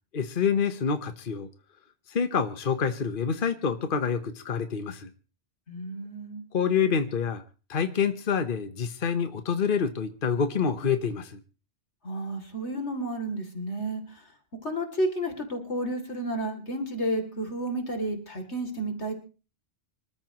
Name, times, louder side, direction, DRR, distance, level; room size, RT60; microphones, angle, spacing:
voice 1, 0.1-1.5 2.1-5.1 6.5-7.4 7.7-11.4, left 6 dB, 50° left, 9 dB, 1.2 m, -27 dB
voice 2, 5.7-6.4 12.0-14.3 14.6-19.1, right 1 dB, 80° left, 5 dB, 3.4 m, -31 dB
26.0 x 13.5 x 3.1 m, 0.35 s
omnidirectional pair, 1.1 m